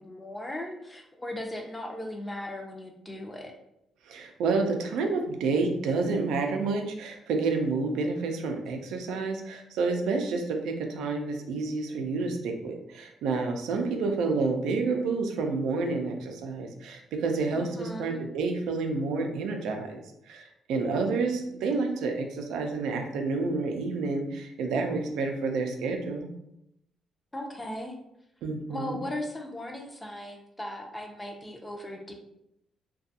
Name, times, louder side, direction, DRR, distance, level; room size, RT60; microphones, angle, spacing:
voice 1, 0.0-3.5 17.5-18.2 27.3-27.9 28.7-32.1, left 1 dB, 15° left, 2 dB, 0.5 m, -37 dB
voice 2, 4.1-20.0 20.3-26.3 28.4-29.0, right 3 dB, 85° right, 4 dB, 0.4 m, -29 dB
2.4 x 2.3 x 2.7 m, 0.80 s
cardioid pair, 90°, 0 cm